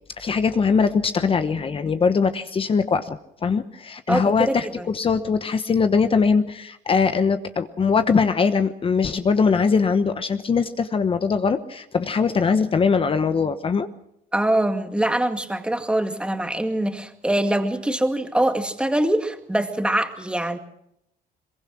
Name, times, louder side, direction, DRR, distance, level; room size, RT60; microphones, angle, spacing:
voice 1, 0.2-13.9, left 5 dB, 35° left, 10 dB, 1.1 m, -21 dB
voice 2, 4.1-4.9 14.3-20.6, right 1 dB, 5° right, 6 dB, 2.1 m, -23 dB
22.5 x 22.0 x 6.3 m, 0.78 s
cardioid pair, 110°, 17 cm